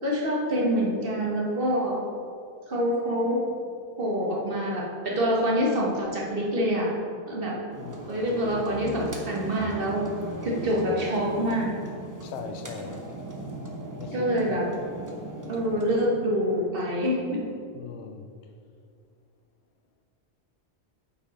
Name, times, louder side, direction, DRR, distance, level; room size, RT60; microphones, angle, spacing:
voice 1, 0.0-2.1 2.7-3.5 4.0-7.0 7.3-7.6 8.1-10.0 10.4-11.7 14.1-14.7 15.5-17.5, equal, 55° right, 1.7 m, -26 dB
sound 1, 7.7-16.0, right 2 dB, 20° right, 0.9 m, -38 dB
voice 2, 7.8-8.1 12.2-13.0 14.0-14.6 17.7-18.3, left 6 dB, 80° left, 0.9 m, -39 dB
8.4 x 5.6 x 5.0 m
omnidirectional pair, 1.1 m